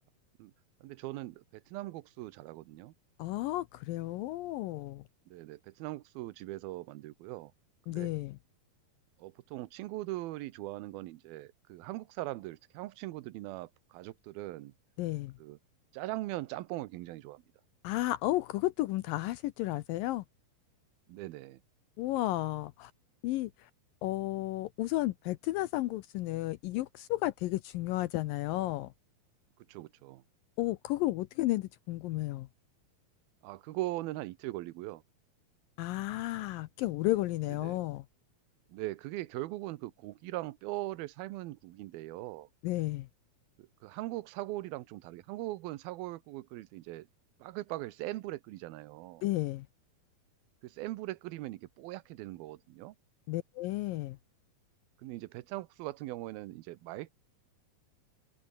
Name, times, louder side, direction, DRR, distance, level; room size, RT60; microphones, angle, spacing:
voice 1, 0.8-2.9 5.3-7.5 7.9-8.1 9.2-14.7 15.4-15.6 15.9-17.4 21.1-21.6 29.7-30.2 33.4-35.0 37.5-37.8 38.7-42.5 43.6-47.1 47.4-49.2 50.6-53.0 55.0-57.1, right 17 dB, 80° right, 2.7 m, -40 dB
voice 2, 3.2-5.0 7.9-8.4 15.0-15.3 17.8-20.2 22.0-22.9 23.2-23.7 24.0-28.9 30.6-32.5 35.8-38.0 42.6-43.1 49.2-49.7 53.3-54.2, left 17 dB, 75° left, 2.2 m, -33 dB
open air
omnidirectional pair, 4.4 m